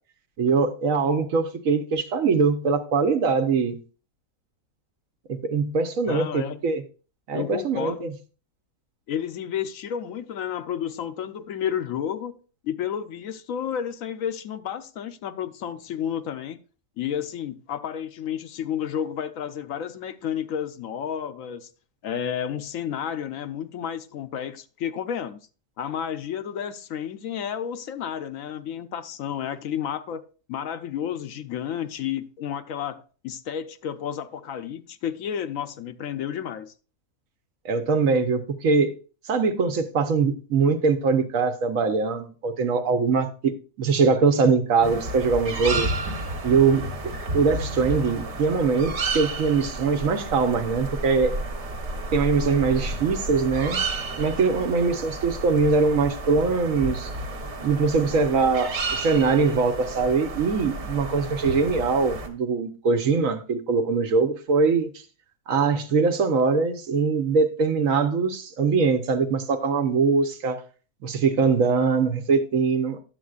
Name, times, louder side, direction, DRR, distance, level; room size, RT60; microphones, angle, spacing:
voice 1, 0.4-3.7 5.3-6.8 7.3-8.1 37.6-38.9 39.3-43.5 43.8-45.9 46.4-46.9 47.3-51.3 52.1-53.8 54.2-57.1 57.6-64.9 65.5-70.6 71.0-73.0, right 4 dB, 65° right, 1.2 m, -22 dB
voice 2, 6.1-6.6 7.3-8.1 9.1-12.4 12.6-16.6 17.0-21.7 22.0-25.4 25.8-36.7, left 9 dB, 70° left, 0.9 m, -31 dB
sound 1, 44.8-62.3, right 2 dB, 50° right, 1.3 m, -32 dB
11.0 x 7.5 x 2.4 m
omnidirectional pair, 1.6 m